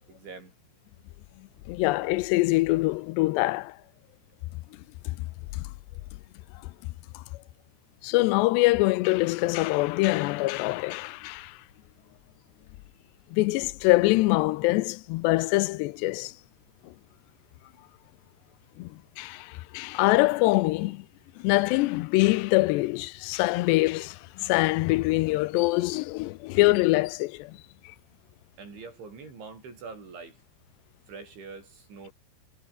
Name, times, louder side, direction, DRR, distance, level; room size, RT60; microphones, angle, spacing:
voice 1, 0.1-0.5 5.9-6.0 28.6-30.4 31.1-32.1, right 4 dB, 85° right, 10.5 m, -44 dB
voice 2, 1.7-3.8 5.1-5.2 5.5-5.7 7.1-7.2 8.0-11.6 13.3-16.3 18.8-21.1 21.4-27.6, left 21 dB, 80° left, 2.7 m, -24 dB
omnidirectional pair, 5.2 m